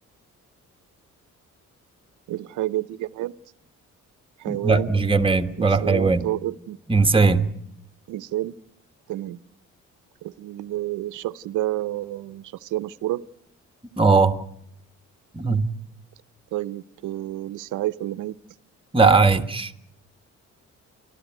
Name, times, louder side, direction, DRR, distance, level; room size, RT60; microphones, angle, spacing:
voice 1, 2.3-3.3 4.4-4.9 5.6-6.8 8.1-8.5 9.1-9.4 10.2-13.2 16.5-18.4, right 15 dB, 85° right, 0.8 m, -29 dB
voice 2, 4.5-6.3 6.9-7.5 14.0-14.4 15.3-15.7 18.9-19.7, right 4 dB, 15° right, 1.6 m, -19 dB
29.0 x 13.0 x 9.3 m
cardioid pair, 90°, 30 cm